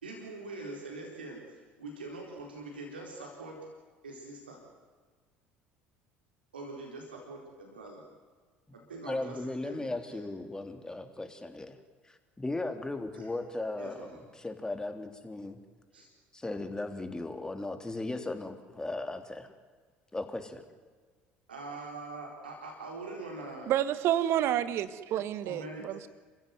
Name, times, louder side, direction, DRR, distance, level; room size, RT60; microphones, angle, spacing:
voice 1, 0.0-3.6 4.0-4.6 6.5-8.0 8.7-10.3 13.1-13.3 13.8-14.2 15.9-16.1 21.5-23.7 25.4-25.8, right 2 dB, 85° right, 4.2 m, -43 dB
voice 2, 9.0-11.8 12.0-15.6 16.3-19.5 20.1-20.6, left 2 dB, 15° left, 3.5 m, -37 dB
voice 3, 23.7-26.1, right 11 dB, 55° right, 1.5 m, -29 dB
28.0 x 15.5 x 9.5 m
hypercardioid pair, 65°, 5 cm